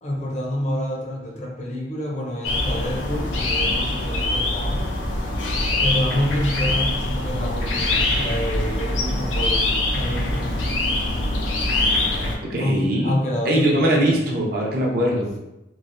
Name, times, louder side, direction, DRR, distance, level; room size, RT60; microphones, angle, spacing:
voice 1, 0.0-4.8 5.8-10.8 12.6-14.2, left 1 dB, 40° left, -1 dB, 0.5 m, -28 dB
sound 1, 2.4-12.4, left 2 dB, 90° left, 0.5 m, -23 dB
voice 2, 12.4-13.2 13.4-15.3, right 1 dB, 55° right, -2 dB, 0.5 m, -21 dB
3.2 x 2.1 x 2.5 m, 0.92 s
head